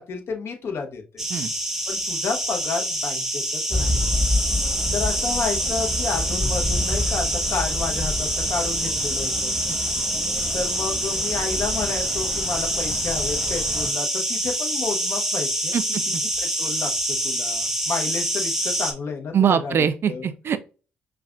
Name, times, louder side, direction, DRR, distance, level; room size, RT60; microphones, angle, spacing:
voice 1, 0.0-1.2 1.9-4.0 4.9-9.5 10.5-15.8 16.6-16.9 17.2-19.8 20.1-20.3, left 4 dB, 55° left, 1.0 m, -31 dB
sound 1, 1.2-18.9, right 1 dB, 5° right, 1.0 m, -26 dB
sound 2, 3.7-13.9, left 1 dB, 15° left, 1.5 m, -29 dB
voice 2, 15.7-16.2 19.3-20.6, right 8 dB, 50° right, 0.4 m, -23 dB
5.3 x 2.4 x 2.4 m
hypercardioid pair, 45°, 5 cm